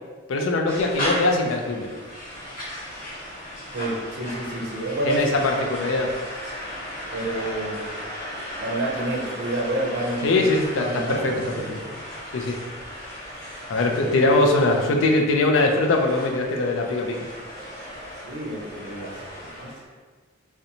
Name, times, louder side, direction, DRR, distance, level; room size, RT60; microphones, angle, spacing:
voice 1, 0.3-1.9 5.0-6.1 10.2-11.8 12.3-12.6 13.7-17.3, left 2 dB, 75° left, 2 dB, 0.4 m, -22 dB
sound 1, 0.7-19.8, equal, 45° left, 1.0 m, -36 dB
voice 2, 3.7-5.3 7.1-7.8 8.6-10.4 10.8-11.2 11.6-11.8 13.6-13.9 18.2-19.8, right 1 dB, 60° right, -2 dB, 0.5 m, -29 dB
2.5 x 2.1 x 2.8 m, 1.4 s
head